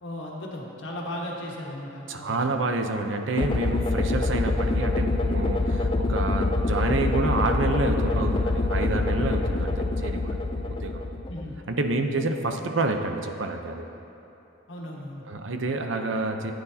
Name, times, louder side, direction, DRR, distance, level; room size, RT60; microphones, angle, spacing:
voice 1, 0.0-2.7 11.3-11.6 12.0-12.2 14.7-15.2, left 1 dB, 70° left, -2 dB, 1.6 m, -36 dB
voice 2, 2.1-10.4 10.8-11.0 11.7-13.8 15.3-16.5, right 2 dB, 75° right, 5 dB, 0.7 m, -28 dB
sound 1, 3.4-11.6, left 2 dB, 25° left, 0.4 m, -25 dB
15.0 x 9.3 x 2.8 m, 2.9 s
head